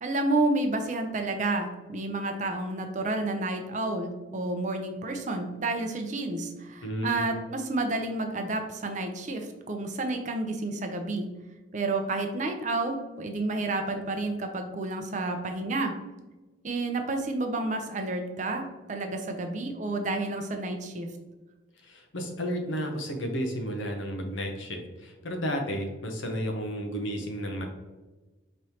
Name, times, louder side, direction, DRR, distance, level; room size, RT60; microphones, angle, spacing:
voice 1, 0.0-11.3 11.7-16.0 16.6-21.1, right 2 dB, 40° right, 5 dB, 0.5 m, -30 dB
voice 2, 6.8-7.2 21.8-27.7, equal, 80° left, 3 dB, 0.8 m, -32 dB
5.2 x 3.1 x 2.9 m, 1.2 s
head